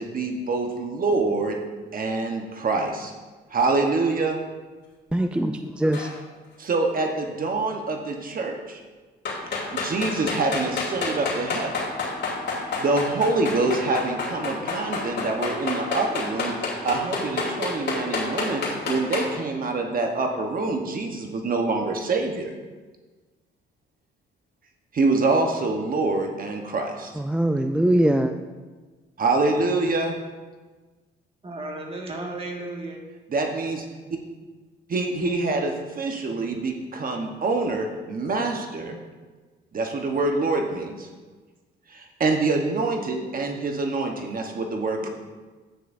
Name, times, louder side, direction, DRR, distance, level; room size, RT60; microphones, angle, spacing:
voice 1, 0.0-1.6 1.9-3.1 3.5-4.4 6.6-8.8 9.7-11.8 12.6-16.5 16.8-22.5 24.9-27.1 29.2-30.1 33.3-33.9 34.9-39.0 39.7-41.1 41.9-45.1, right 3 dB, 45° right, 3 dB, 1.0 m, -25 dB
voice 2, 5.1-6.0 27.2-28.3, right 1 dB, 5° right, 7 dB, 0.3 m, -22 dB
sound 1, 5.9-6.2 9.2-19.3, left 4 dB, 60° left, 2.8 m, -28 dB
voice 3, 31.4-33.0 45.0-45.1, right 2 dB, 30° right, 1 dB, 1.8 m, -34 dB
10.0 x 9.2 x 2.6 m, 1.3 s
cardioid pair, 90°, 20 cm